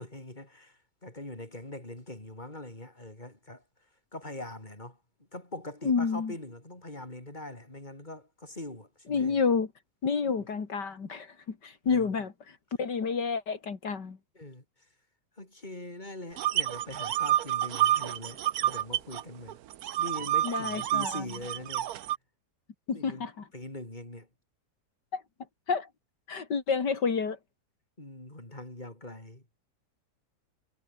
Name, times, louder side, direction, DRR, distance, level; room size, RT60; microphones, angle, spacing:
voice 1, 0.0-3.6 4.1-5.0 5.3-9.4 10.2-10.3 11.8-12.1 14.4-14.6 15.4-19.6 20.0-21.9 22.9-23.3 23.5-24.3 28.0-29.4, left 1 dB, 25° left, 5.6 m, -42 dB
voice 2, 5.8-6.3 9.1-9.7 10.0-12.3 12.8-14.2 20.4-21.2 22.9-23.5 25.1-25.2 25.7-25.9 26.3-27.4, left 5 dB, 80° left, 3.1 m, -29 dB
sound 1, 16.4-19.2 19.5-22.2, right 12 dB, 65° right, 1.2 m, -28 dB
omnidirectional pair, 1.8 m